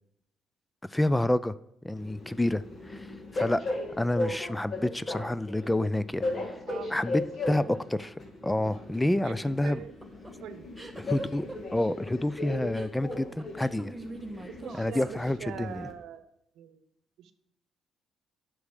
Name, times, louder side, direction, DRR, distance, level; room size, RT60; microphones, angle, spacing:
voice 1, 0.9-1.6 1.8-3.1 3.3-3.7 4.0-6.2 6.9-8.1 8.4-9.8 11.0-13.9 14.8-15.9, left 1 dB, 10° left, 16 dB, 0.4 m, -28 dB
Train, 2.0-15.9, left 2 dB, 40° left, 1.9 m, -37 dB
voice 2, 6.7-7.0 7.5-7.8 9.2-9.4 9.6-9.9 10.4-10.6 14.5-16.2 16.6-16.8 17.2-17.3, right 9 dB, 80° right, 11 dB, 0.8 m, -42 dB
sound 1, 9.5-15.8, right 2 dB, 10° right, 1.3 m, -44 dB
8.2 x 6.2 x 6.5 m, 0.80 s
cardioid pair, 90°, 0 cm